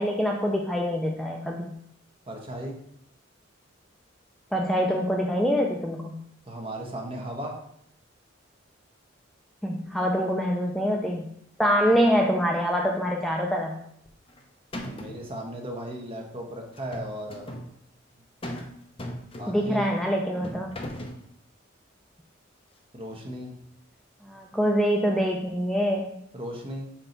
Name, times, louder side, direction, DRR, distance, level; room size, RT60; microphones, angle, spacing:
voice 1, 0.0-1.7 4.5-6.2 9.6-11.3 11.6-13.8 19.5-20.7 24.2-26.2, equal, ahead, 0 dB, 0.4 m, -25 dB
voice 2, 2.3-2.7 6.5-7.6 14.9-17.5 19.4-19.9 22.9-23.5 26.3-26.9, right 1 dB, 30° right, 0 dB, 1.1 m, -36 dB
sound 1, 14.1-14.4 14.7-15.3 16.7-17.7 18.4-18.7 19.0-19.8 20.4-21.2, left 1 dB, 30° left, 0.8 m, -37 dB
6.1 x 4.5 x 4.0 m, 0.71 s
head